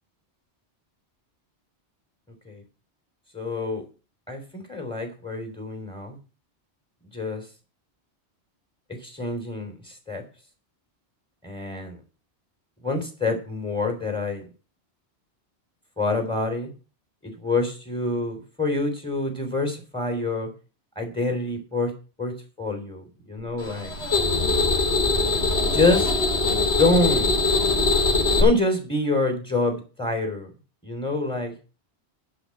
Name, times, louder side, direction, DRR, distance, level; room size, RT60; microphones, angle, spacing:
voice 1, 3.3-3.8 4.3-6.2 7.1-7.4 9.0-10.2 11.4-12.0 12.8-14.5 16.0-16.7 17.2-20.5 21.0-21.9 22.2-23.9 25.7-26.1 26.8-27.4 28.4-30.5 30.8-31.5, left 2 dB, 5° left, 5 dB, 3.0 m, -26 dB
sound 1, 23.6-28.4, left 3 dB, 70° left, 3.4 m, -22 dB
10.5 x 5.1 x 7.7 m, 0.34 s
omnidirectional pair, 1.1 m